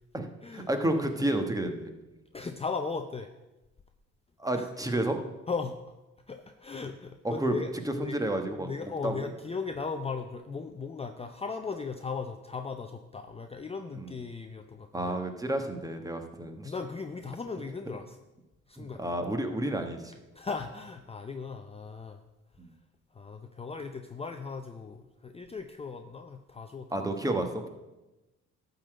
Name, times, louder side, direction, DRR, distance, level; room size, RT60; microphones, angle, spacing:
voice 1, 0.1-1.9 4.4-5.2 7.2-7.6 7.9-9.3 14.0-14.2 14.9-16.7 18.8-20.1 22.6-22.7 26.9-27.6, right 1 dB, 10° right, 6 dB, 1.2 m, -31 dB
voice 2, 2.3-3.3 4.6-4.7 5.5-5.8 6.3-8.2 8.6-15.2 16.6-18.2 18.7-19.0 20.3-22.2 23.1-26.9, left 4 dB, 20° left, 6 dB, 0.6 m, -37 dB
11.5 x 3.9 x 7.7 m, 1.0 s
cardioid pair, 90°, 30 cm